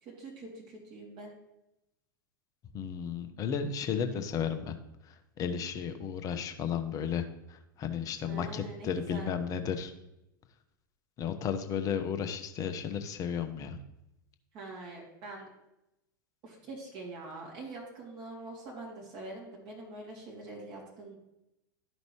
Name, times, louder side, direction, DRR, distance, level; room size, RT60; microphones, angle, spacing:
voice 1, 0.0-1.3 3.9-4.2 8.2-9.3 14.5-15.5 16.4-21.1, right 2 dB, 40° right, -3 dB, 2.6 m, -44 dB
voice 2, 2.7-4.7 5.4-9.9 11.2-13.8, left 7 dB, 30° left, 8 dB, 0.8 m, -33 dB
11.5 x 5.2 x 3.1 m, 0.89 s
figure-of-eight pair, 85°, 12 cm